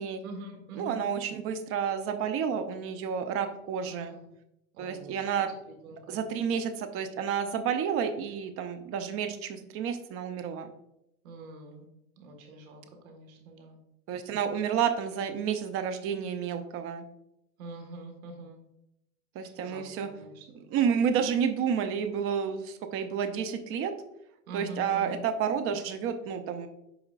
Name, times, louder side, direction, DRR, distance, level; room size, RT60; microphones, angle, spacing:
voice 1, 0.2-1.0 3.8-4.2 4.7-5.2 5.7-6.3 11.2-11.9 12.2-13.8 17.6-18.6 19.6-20.4 24.5-25.2, right 2 dB, 75° right, 4 dB, 1.7 m, -44 dB
voice 2, 0.8-4.2 4.8-5.5 6.1-10.7 14.1-17.1 19.4-20.1 20.7-23.9 24.5-26.7, right 7 dB, 35° right, 9 dB, 0.7 m, -30 dB
8.0 x 5.0 x 2.5 m, 0.84 s
supercardioid pair, 130°, 42 cm